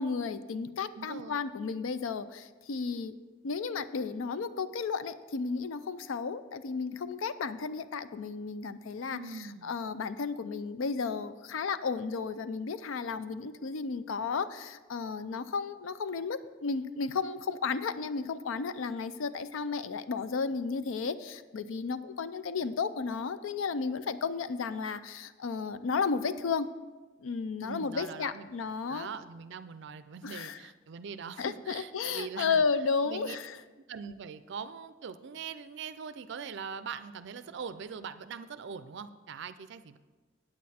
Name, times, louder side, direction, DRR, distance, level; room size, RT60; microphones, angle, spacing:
voice 1, 0.0-3.2 3.4-26.7 27.2-29.1 30.2-30.6 31.4-33.6, left 5 dB, 75° left, 13 dB, 0.4 m, -33 dB
voice 2, 0.9-1.4 9.1-9.7 27.6-28.5 28.9-32.6 33.1-33.4 33.9-40.0, right 6 dB, 60° right, 12 dB, 0.4 m, -42 dB
8.7 x 8.4 x 4.2 m, 1.3 s
head